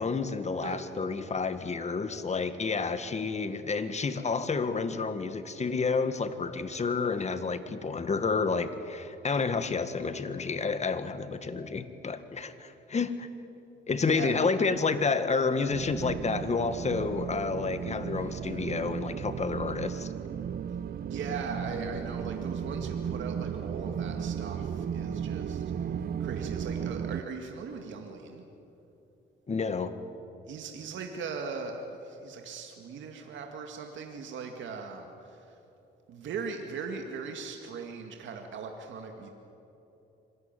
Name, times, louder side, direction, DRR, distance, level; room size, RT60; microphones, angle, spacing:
voice 1, 0.0-13.3 13.9-20.1 29.5-29.9, left 4 dB, 35° left, 11 dB, 1.7 m, -30 dB
voice 2, 0.6-1.3 14.1-14.5 21.0-25.6 26.2-28.4 30.5-35.4 36.1-39.3, right 5 dB, 70° right, 3 dB, 2.2 m, -39 dB
sound 1, 15.7-27.2, right 8 dB, 50° right, 0.8 m, -35 dB
26.0 x 18.0 x 9.1 m, 3.0 s
cardioid pair, 90°, 20 cm